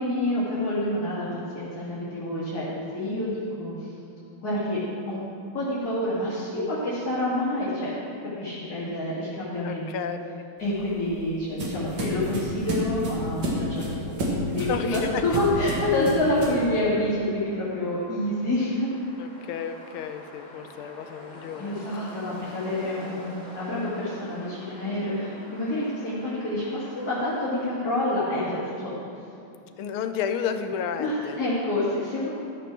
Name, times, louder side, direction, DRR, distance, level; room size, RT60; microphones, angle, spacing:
voice 1, 0.0-2.7 2.9-3.9 4.4-4.8 5.1-5.2 5.5-7.9 8.4-9.9 10.6-18.9 21.6-29.0 29.6-29.7 31.0-32.3, left 1 dB, 45° left, -11 dB, 2.8 m, -28 dB
voice 2, 9.6-10.2 14.6-15.2 19.2-21.8 29.8-31.4, left 7 dB, 85° left, 8 dB, 1.5 m, -32 dB
sound 1, 10.6-16.7, equal, 60° right, 2.5 m, -30 dB
sound 2, 15.2-27.7, left 1 dB, 20° left, 1.9 m, -46 dB
13.0 x 6.9 x 6.1 m, 2.5 s
omnidirectional pair, 2.4 m